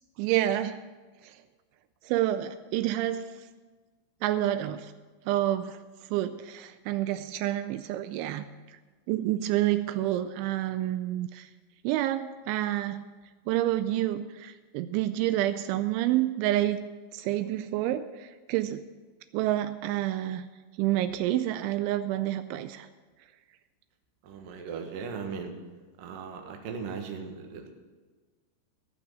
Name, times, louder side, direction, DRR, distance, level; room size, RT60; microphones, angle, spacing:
voice 1, 0.2-0.8 1.2-1.4 2.0-3.3 4.2-4.9 5.3-5.8 6.1-8.5 9.1-11.5 11.8-13.1 13.5-16.8 17.1-18.8 19.3-20.5 20.8-22.9, right 13 dB, 85° right, 11 dB, 2.9 m, -28 dB
voice 2, 24.2-25.5 26.0-27.7, right 5 dB, 65° right, 4 dB, 2.5 m, -38 dB
17.0 x 6.1 x 9.0 m, 1.4 s
omnidirectional pair, 5.4 m